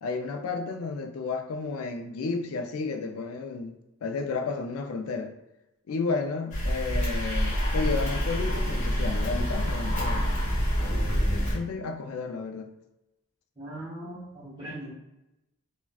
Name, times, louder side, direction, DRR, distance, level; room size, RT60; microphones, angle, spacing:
voice 1, 0.0-3.7 4.0-5.3 5.9-10.3 11.3-12.7, left 4 dB, 80° left, 6 dB, 0.4 m, -32 dB
sound 1, 6.5-11.6, equal, 35° left, 0.9 m, -27 dB
voice 2, 13.6-14.9, right 1 dB, 20° right, -7 dB, 1.2 m, -39 dB
3.4 x 2.2 x 2.3 m, 0.93 s
head